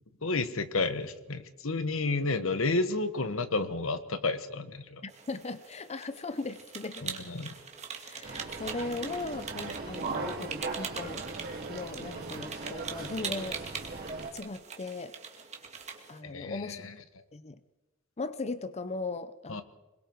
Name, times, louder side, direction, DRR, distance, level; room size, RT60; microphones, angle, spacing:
voice 1, 0.2-5.0 7.0-7.5 16.2-16.9 19.5-19.6, left 3 dB, 75° left, 11 dB, 1.4 m, -31 dB
voice 2, 5.0-7.1 7.9-11.2 11.7-14.0 14.3-15.1 16.1-16.8 17.3-17.6 18.2-19.6, left 3 dB, 30° left, 12 dB, 0.7 m, -38 dB
sound 1, 5.1-16.2, right 6 dB, 35° right, 2.3 m, -42 dB
sound 2, 8.2-14.3, right 3 dB, 50° right, 3.6 m, -38 dB
25.5 x 22.0 x 4.7 m, 1.1 s
head